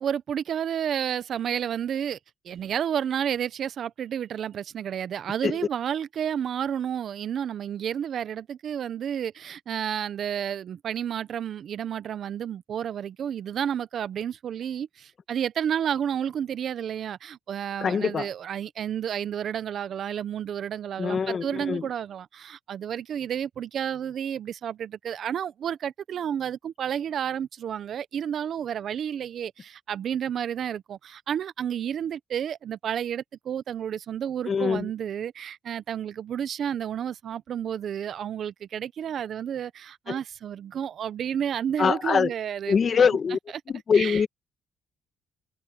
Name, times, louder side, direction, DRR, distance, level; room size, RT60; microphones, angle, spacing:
voice 1, 0.0-2.2 2.4-43.0 43.9-44.2, right 9 dB, 60° right, 0.8 m, -31 dB
voice 2, 17.8-18.3 21.0-21.9 34.5-34.9 40.1-40.2 41.8-42.3 42.7-43.4 43.7-44.3, left 6 dB, 45° left, 1.7 m, -23 dB
cardioid pair, 90°, 0 cm